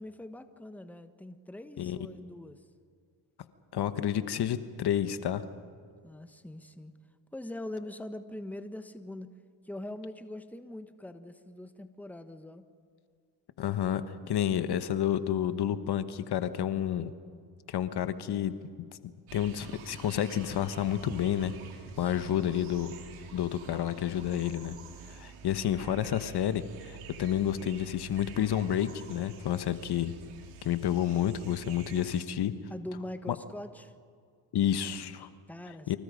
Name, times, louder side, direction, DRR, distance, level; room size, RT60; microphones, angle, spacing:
voice 1, 0.0-2.7 6.0-6.9 7.3-9.3 9.6-12.7 22.0-22.6 32.7-33.9 35.5-36.0, left 1 dB, 5° left, 9 dB, 1.4 m, -43 dB
voice 2, 3.7-5.4 13.6-17.1 17.7-18.5 19.3-21.5 22.0-22.9 23.3-24.7 25.1-30.1 30.6-32.5 34.5-35.3 35.9-36.0, left 10 dB, 50° left, 12 dB, 1.2 m, -30 dB
sound 1, 19.3-32.2, right 8 dB, 80° right, 3.5 m, -48 dB
30.0 x 25.5 x 5.2 m, 2.2 s
supercardioid pair, 80°, 50 cm